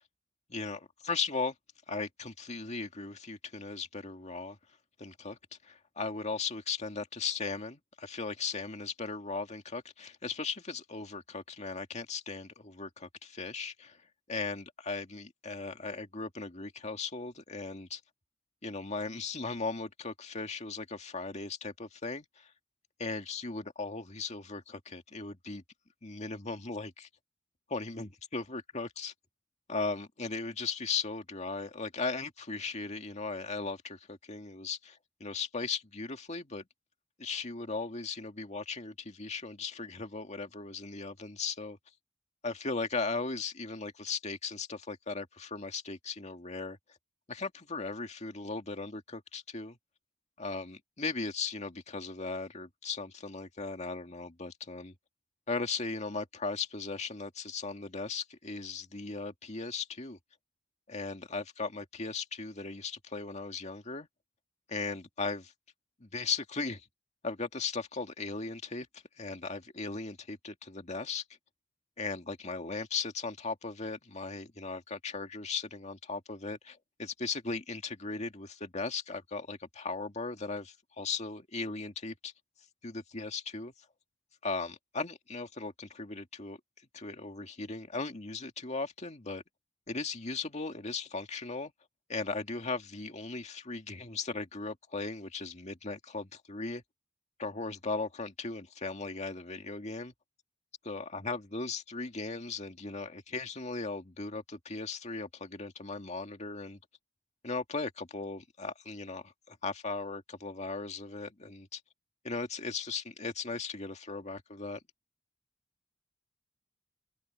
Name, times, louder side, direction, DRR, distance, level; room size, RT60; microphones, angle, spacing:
voice 1, 0.5-1.5 1.9-4.6 5.0-14.0 14.3-18.0 18.6-22.5 23.0-25.6 26.0-27.1 27.7-29.1 29.7-36.6 37.2-41.8 42.4-46.8 47.3-49.8 50.4-54.9 55.5-60.2 60.9-64.1 64.7-65.5 66.0-66.9 67.2-68.9 69.2-71.2 72.0-82.3 82.8-83.7 84.4-86.6 86.9-89.4 89.9-91.7 92.1-96.8 97.4-100.1 100.8-106.8 107.4-111.8 112.2-114.8, left 4 dB, 40° left, 2.1 m, -37 dB
open air
head